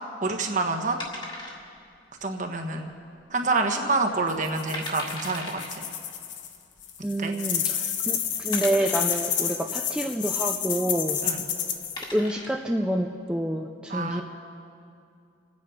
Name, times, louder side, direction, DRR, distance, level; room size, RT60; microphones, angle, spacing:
voice 1, 0.2-1.0 2.2-2.9 3.3-5.8 7.2-7.3 11.2-11.4 13.9-14.2, right 3 dB, 40° right, 4 dB, 1.3 m, -27 dB
sound 1, 1.0-2.0 2.2-2.3 2.9-3.3 3.7-3.8 4.4-4.5 4.7-5.7 6.8-6.9 7.6-7.7 8.5-9.4 11.2-11.4 11.8-12.6, left 2 dB, 25° left, 1.8 m, -38 dB
sound 2, 4.3-6.6 6.8-12.0, left 9 dB, 70° left, 1.1 m, -29 dB
voice 2, 7.0-11.2 12.1-14.2, right 1 dB, 5° right, 1 dB, 0.5 m, -28 dB
28.5 x 9.6 x 5.1 m, 2.5 s
head